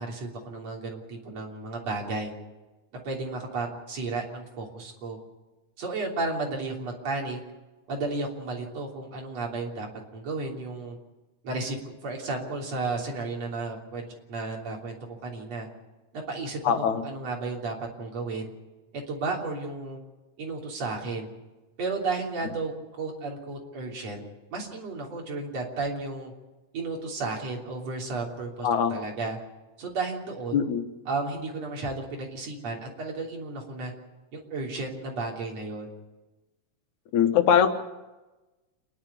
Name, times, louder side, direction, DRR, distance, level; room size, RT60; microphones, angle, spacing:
voice 1, 0.0-2.3 3.0-5.2 5.8-7.4 7.9-9.9 10.1-11.0 11.4-11.8 12.0-15.0 15.2-15.7 16.1-18.5 18.9-20.0 20.4-21.3 21.8-24.2 24.5-26.3 26.7-29.4 29.8-30.5 31.1-33.9 34.3-35.9, right 3 dB, 60° right, -1 dB, 4.4 m, -33 dB
voice 2, 16.6-17.0 28.6-28.9 30.5-30.9 37.1-37.8, left 8 dB, 80° left, 6 dB, 2.8 m, -22 dB
29.0 x 10.5 x 8.5 m, 1.1 s
omnidirectional pair, 3.3 m